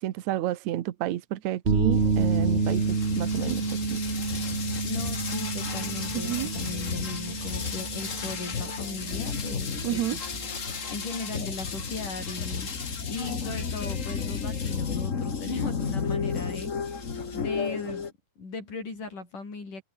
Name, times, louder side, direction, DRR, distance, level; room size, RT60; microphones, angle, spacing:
voice 1, 0.0-4.0 6.1-6.5 9.8-10.2, right 13 dB, 65° right, 2.4 m, -30 dB
sound 1, 1.7-17.6, right 4 dB, 30° right, 1.2 m, -31 dB
sound 2, 1.9-18.1, left 6 dB, 40° left, 1.1 m, -33 dB
voice 2, 4.8-10.2 10.9-17.0 17.3-18.0 18.4-19.8, left 3 dB, 75° left, 9.1 m, -38 dB
omnidirectional pair, 3.7 m